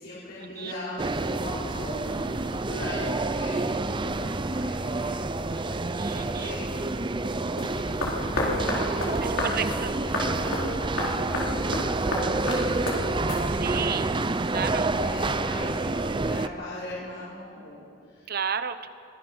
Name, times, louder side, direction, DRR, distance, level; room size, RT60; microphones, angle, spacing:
voice 1, 0.0-3.6 3.9-9.6 10.0-14.3 14.9-18.4, left 1 dB, 60° left, -10 dB, 5.3 m, -40 dB
sound 1, 1.0-16.5, right 2 dB, 25° right, 0.6 m, -28 dB
voice 2, 6.0-6.5 9.2-9.9 13.6-14.0 14.5-14.9 18.3-18.9, right 7 dB, 50° right, 11 dB, 0.9 m, -32 dB
sound 2, 7.6-13.9, left 1 dB, 80° left, 4.2 m, -31 dB
24.5 x 20.0 x 6.3 m, 2.6 s
head